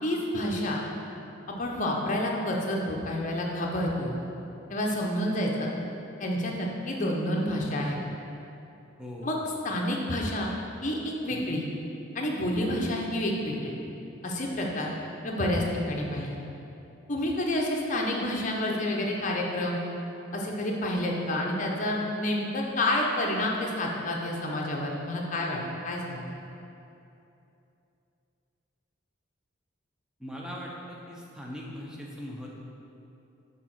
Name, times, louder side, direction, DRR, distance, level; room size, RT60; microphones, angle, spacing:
voice 1, 0.0-0.8 1.6-4.1 4.7-5.7 6.2-8.0 9.2-9.4 9.6-10.5 10.8-11.6 12.1-13.7 14.2-14.9 15.2-16.4 17.1-19.8 20.3-26.2, left 1 dB, 40° left, -1 dB, 0.7 m, -29 dB
voice 2, 9.0-9.4 11.3-11.5 30.2-32.5, equal, 5° right, -3 dB, 0.5 m, -40 dB
4.9 x 3.9 x 5.8 m, 2.8 s
head